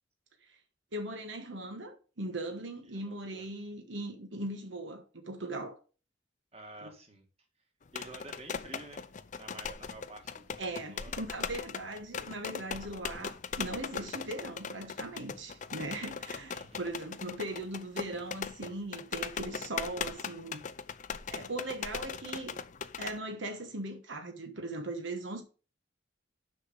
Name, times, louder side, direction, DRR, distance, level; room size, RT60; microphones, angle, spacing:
voice 1, 0.9-5.8 6.8-6.9 10.6-20.6 21.3-22.6 23.0-25.4, right 2 dB, 85° right, 1.3 m, -39 dB
voice 2, 2.8-3.4 6.5-7.2 7.9-11.2 16.5-16.9, right 2 dB, 35° right, 1.9 m, -50 dB
sound 1, 7.9-23.2, left 6 dB, 40° left, 0.5 m, -40 dB
6.4 x 5.8 x 5.3 m
head